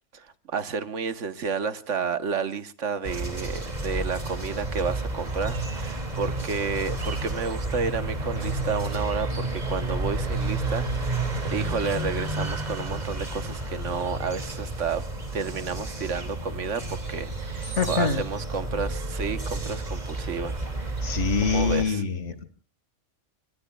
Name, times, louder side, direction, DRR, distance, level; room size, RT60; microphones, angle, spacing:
voice 1, 0.1-15.0 15.3-21.1 21.4-22.0, right 5 dB, 80° right, 1.5 m, -31 dB
sound 1, 3.0-21.8, right 2 dB, 35° right, 2.6 m, -31 dB
voice 2, 17.8-18.2 21.0-22.4, left 5 dB, 70° left, 2.1 m, -25 dB
26.5 x 23.5 x 2.3 m
omnidirectional pair, 1.3 m